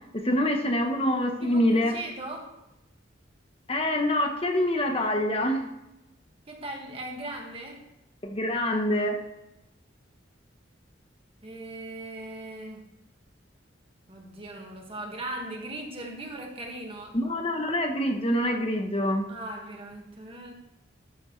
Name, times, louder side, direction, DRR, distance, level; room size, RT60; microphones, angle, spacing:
voice 1, 0.1-2.0 3.7-5.7 8.2-9.2 17.1-19.2, left 1 dB, 30° left, 4 dB, 0.9 m, -25 dB
voice 2, 1.4-2.5 6.5-7.8 11.4-12.9 14.1-17.2 19.3-20.5, right 1 dB, 30° right, 1 dB, 1.7 m, -39 dB
13.0 x 8.4 x 3.2 m, 0.91 s
head